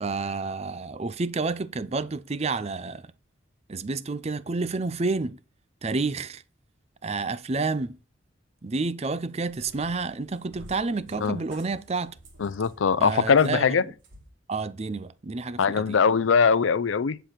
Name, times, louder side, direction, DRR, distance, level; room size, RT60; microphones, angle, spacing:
voice 1, 0.0-3.0 3.7-5.4 5.8-6.4 7.0-8.0 8.6-12.1 13.0-13.8 14.5-16.0, right 3 dB, 35° right, 0.5 m, -29 dB
Cat, 9.3-14.3, equal, 80° right, 2.9 m, -51 dB
voice 2, 12.4-13.8 15.6-17.2, left 6 dB, 85° left, 0.5 m, -21 dB
10.0 x 5.0 x 5.7 m
head